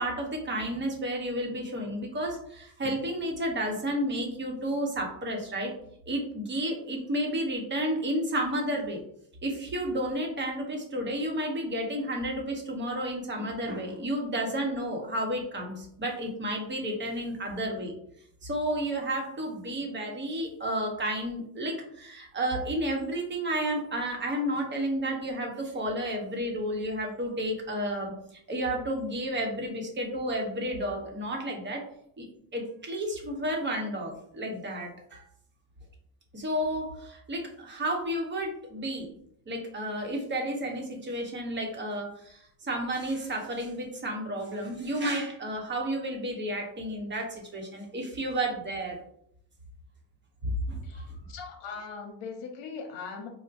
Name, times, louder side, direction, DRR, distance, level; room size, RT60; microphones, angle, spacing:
voice 1, 0.0-5.7 6.1-9.0 9.4-17.9 18.4-31.8 32.2-32.3 32.5-35.2 36.3-39.1 39.5-49.0 50.4-51.0, right 1 dB, 25° right, 1 dB, 0.9 m, -31 dB
voice 2, 50.8-53.3, left 5 dB, 75° left, 2 dB, 0.9 m, -40 dB
4.4 x 2.1 x 2.5 m, 0.70 s
cardioid pair, 110°, 45 cm